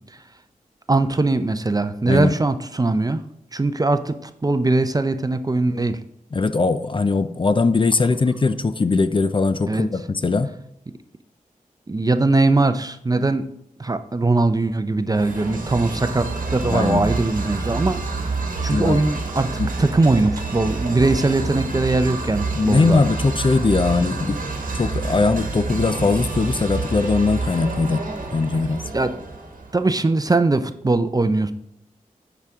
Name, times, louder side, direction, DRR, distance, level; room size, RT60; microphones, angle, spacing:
voice 1, 0.9-3.2 3.5-6.0 9.7-9.9 11.9-13.5 13.8-19.5 19.8-23.0 28.9-29.1 29.7-31.5, right 2 dB, 25° right, 10 dB, 0.5 m, -21 dB
voice 2, 6.3-10.5 16.7-17.0 18.7-19.0 19.6-19.7 22.5-24.4 24.7-28.1 28.3-28.9, left 3 dB, 35° left, 11 dB, 0.5 m, -20 dB
sound 1, 15.1-29.8, right 3 dB, 70° right, 1.2 m, -28 dB
8.2 x 5.0 x 3.5 m, 0.76 s
cardioid pair, 45°, 15 cm